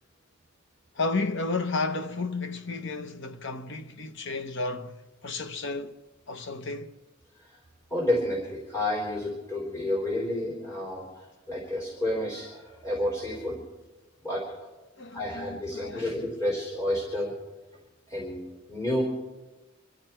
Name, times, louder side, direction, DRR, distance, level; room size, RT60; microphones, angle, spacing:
voice 1, 1.0-5.0 5.2-5.9 6.3-6.9 15.0-16.0, left 3 dB, 60° left, 1.0 m, -32 dB
voice 2, 7.9-13.6 14.2-14.6 15.1-17.3 18.1-19.0, left 1 dB, 15° left, 3.6 m, -30 dB
25.0 x 12.5 x 4.5 m
head